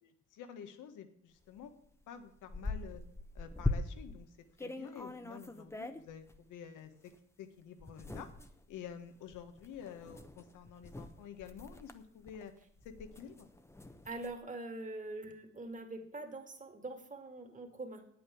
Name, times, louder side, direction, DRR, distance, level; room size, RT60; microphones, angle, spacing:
voice 1, 0.0-1.7 2.1-3.0 3.3-4.3 4.6-7.1 7.4-8.3 8.7-12.5 12.8-13.5, left 8 dB, 90° left, 8 dB, 1.5 m, -49 dB
sound 1, 1.6-1.7 2.0-4.2 4.6-6.4 7.1-7.2 7.8-14.4, left 2 dB, 10° left, 0.9 m, -42 dB
voice 2, 14.0-18.1, right 2 dB, 25° right, 5 dB, 2.3 m, -44 dB
9.0 x 8.6 x 8.5 m, 0.64 s
cardioid pair, 90°, 30 cm